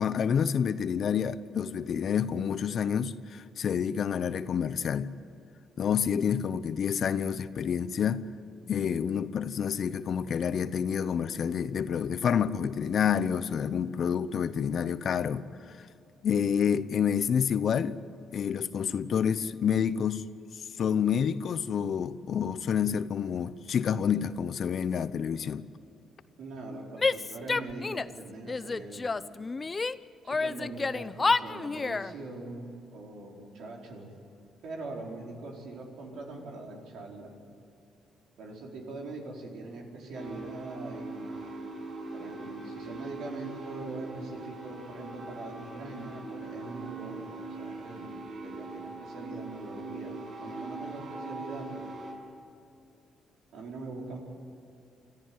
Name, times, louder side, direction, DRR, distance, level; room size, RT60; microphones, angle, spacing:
voice 1, 0.0-5.1 5.8-8.2 8.7-15.9 16.2-18.0 18.3-20.2 20.8-25.7, left 7 dB, 60° left, 0.9 m, -28 dB
voice 2, 26.4-29.2 30.2-34.1 34.6-37.3 38.4-41.3 42.1-48.1 48.4-51.9 53.5-54.2, right 2 dB, 75° right, 4.6 m, -42 dB
Female speech woman speaking / Yell, 27.0-28.2 28.5-30.0 30.3-32.1, left 4 dB, 30° left, 0.6 m, -29 dB
sound 1, 40.1-52.1, right 3 dB, 60° right, 6.8 m, -41 dB
25.5 x 14.0 x 9.5 m
cardioid pair, 90°, 0 cm